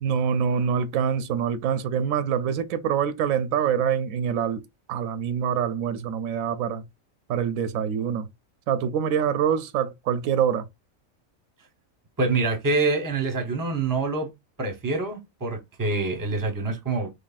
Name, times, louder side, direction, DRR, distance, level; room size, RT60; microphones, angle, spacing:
voice 1, 0.0-4.6 4.9-6.8 7.3-8.3 8.7-10.7, right 8 dB, 80° right, 1.0 m, -25 dB
voice 2, 12.2-14.3 14.6-17.1, right 3 dB, 20° right, 0.8 m, -26 dB
3.9 x 3.2 x 2.4 m
omnidirectional pair, 1.4 m